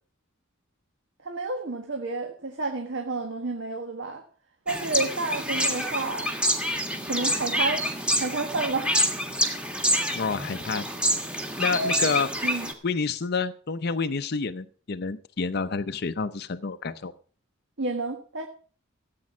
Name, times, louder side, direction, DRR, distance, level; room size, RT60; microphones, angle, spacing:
voice 1, 1.2-4.2 4.6-6.3 7.1-7.8 8.2-8.9 11.7-11.9 12.4-12.7 17.8-18.5, right 3 dB, 60° right, 4 dB, 1.5 m, -30 dB
sound 1, 4.7-12.7, equal, 5° right, 1.7 m, -27 dB
voice 2, 10.1-10.9 11.6-12.3 12.8-17.1, left 4 dB, 50° left, 9 dB, 0.6 m, -28 dB
15.0 x 8.6 x 6.0 m, 0.41 s
head